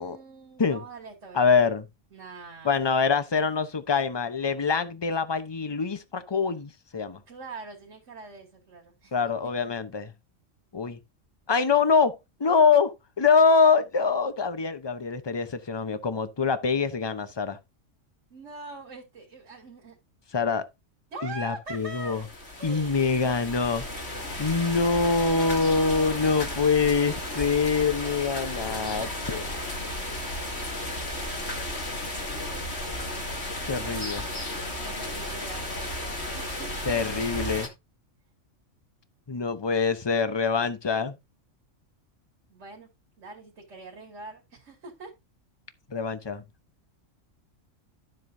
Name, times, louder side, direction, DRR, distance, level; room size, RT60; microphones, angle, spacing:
voice 1, 0.0-1.4 2.1-2.8 7.3-9.1 18.3-20.0 21.1-22.3 22.6-23.2 24.4-26.7 29.0-30.1 31.1-31.8 34.8-35.7 36.4-37.2 42.5-42.9 43.2-45.1, right 3 dB, 65° right, 2.7 m, -43 dB
voice 2, 1.3-1.9 2.6-7.2 9.1-10.1 10.7-11.0 11.5-17.6 20.3-20.6 21.2-22.2 22.6-23.8 24.4-29.4 33.7-34.2 36.9-37.7 39.3-41.2 45.9-46.4, left 5 dB, 25° left, 0.8 m, -24 dB
sound 1, 21.7-37.7, left 1 dB, 55° left, 2.7 m, -34 dB
12.0 x 7.7 x 2.7 m
omnidirectional pair, 1.3 m